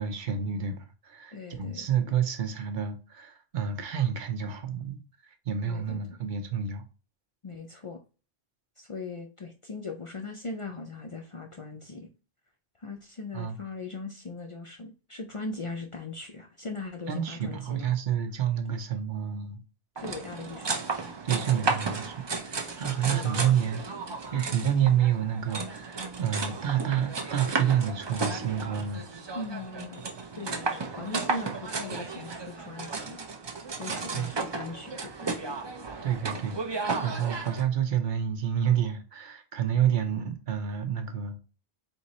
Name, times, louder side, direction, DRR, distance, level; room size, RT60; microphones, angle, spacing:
voice 1, 0.0-5.0 5.5-6.8 13.3-13.6 17.1-19.6 21.2-23.8 24.3-29.0 34.1-34.3 36.0-36.6 37.0-41.4, right 9 dB, 55° right, 0.8 m, -29 dB
voice 2, 1.3-2.1 5.7-6.2 7.4-8.0 8.8-12.1 12.8-17.9 20.0-20.7 22.9-23.6 24.2-24.3 29.3-30.0 30.3-33.2 33.8-35.4 36.4-36.5, left 3 dB, 50° left, 0.4 m, -39 dB
sound 1, 20.0-37.6, right 4 dB, 35° right, 0.4 m, -34 dB
3.7 x 2.8 x 4.1 m
omnidirectional pair, 1.1 m